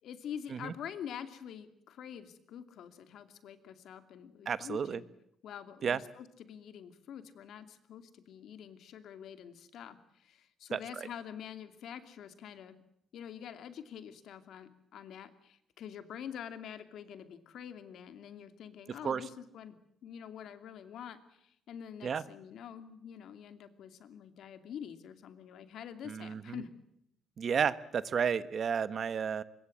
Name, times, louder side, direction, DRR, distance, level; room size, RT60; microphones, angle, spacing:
voice 1, 0.0-5.1 5.4-12.8 13.1-19.8 20.0-26.7, left 9 dB, 70° left, 10 dB, 2.6 m, -46 dB
voice 2, 4.5-5.0 5.8-6.0 10.7-11.1 19.0-19.2 22.0-22.2 26.1-26.6 27.4-29.4, right 7 dB, 45° right, 15 dB, 1.2 m, -32 dB
25.0 x 22.5 x 7.8 m, 0.75 s
cardioid pair, 140°, 0 cm